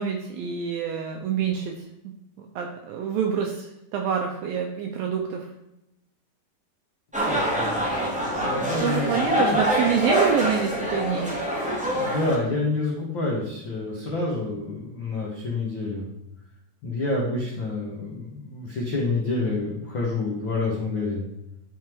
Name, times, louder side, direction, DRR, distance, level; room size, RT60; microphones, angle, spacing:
voice 1, 0.0-1.7 2.6-5.5 8.8-11.3, right 7 dB, 80° right, 3 dB, 2.1 m, -26 dB
sound 1, 7.1-12.3, equal, 5° right, 1.2 m, -25 dB
voice 2, 7.3-8.0 8.4-9.6 11.9-16.1 16.8-21.3, left 3 dB, 75° left, -3 dB, 1.0 m, -28 dB
11.5 x 5.8 x 4.7 m, 0.86 s
omnidirectional pair, 5.0 m